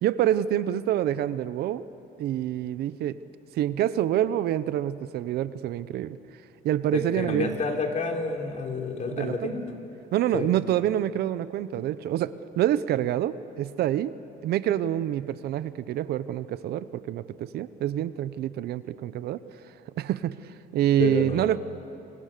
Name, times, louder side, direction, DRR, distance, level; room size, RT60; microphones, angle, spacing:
voice 1, 0.0-1.8 2.2-3.2 3.6-6.2 6.6-7.5 9.1-9.5 10.1-14.1 14.4-19.4 20.0-20.4 20.7-21.6, right 12 dB, 70° right, 15 dB, 0.9 m, -26 dB
voice 2, 6.9-9.6 10.3-10.5 21.0-21.5, left 4 dB, 45° left, 3 dB, 3.5 m, -29 dB
27.5 x 25.5 x 6.8 m, 2.9 s
cardioid pair, 110°, 17 cm